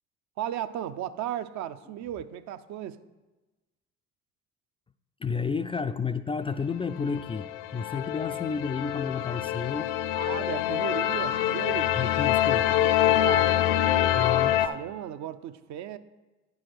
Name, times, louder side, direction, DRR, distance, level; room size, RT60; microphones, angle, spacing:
voice 1, 0.4-3.0 10.1-12.0 13.2-14.3 14.6-16.0, right 10 dB, 55° right, 11 dB, 0.6 m, -35 dB
voice 2, 5.2-9.9 12.0-12.7 14.1-14.6, left 5 dB, 15° left, 10 dB, 0.3 m, -31 dB
sound 1, 7.0-14.7, left 12 dB, 75° left, 0.5 m, -25 dB
9.5 x 4.8 x 6.1 m, 1.1 s
hypercardioid pair, 65°, 33 cm